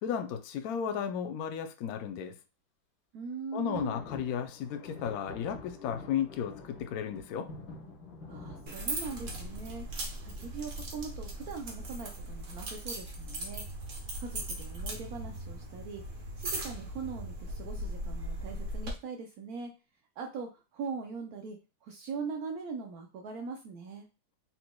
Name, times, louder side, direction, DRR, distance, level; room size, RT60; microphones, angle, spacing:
voice 1, 0.0-2.3 3.5-7.5, left 8 dB, 80° left, 7 dB, 0.8 m, -34 dB
voice 2, 3.1-4.0 8.3-13.6 14.2-19.7 20.2-24.1, right 5 dB, 85° right, 3 dB, 0.8 m, -41 dB
sound 1, 3.7-12.3, left 3 dB, 55° left, 1.9 m, -48 dB
sound 2, 8.7-18.9, right 1 dB, 45° right, 1.1 m, -39 dB
4.2 x 4.2 x 2.2 m, 0.31 s
omnidirectional pair, 2.3 m